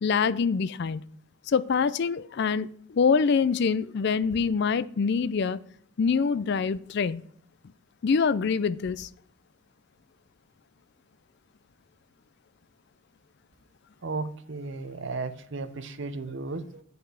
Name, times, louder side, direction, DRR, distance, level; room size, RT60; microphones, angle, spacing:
voice 1, 0.0-1.0 1.5-5.6 6.0-7.2 8.0-9.1, left 5 dB, 50° left, 0.4 m, -25 dB
voice 2, 14.0-16.8, right 3 dB, 55° right, 0.6 m, -34 dB
7.9 x 5.4 x 6.2 m
head